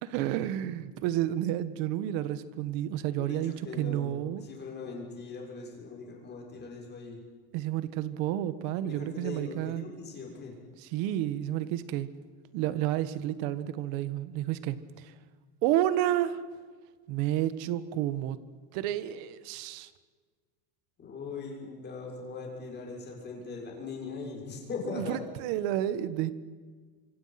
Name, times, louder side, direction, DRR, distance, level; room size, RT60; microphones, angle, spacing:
voice 1, 0.0-4.4 7.5-9.8 10.8-12.1 12.5-15.1 15.6-16.4 17.1-18.4 18.7-19.9 24.9-26.3, right 12 dB, 50° right, 13 dB, 1.6 m, -30 dB
voice 2, 3.1-7.2 8.8-10.5 21.0-25.2, left 4 dB, 20° left, 0 dB, 6.6 m, -40 dB
28.5 x 26.5 x 6.0 m, 1.5 s
supercardioid pair, 170°, 47 cm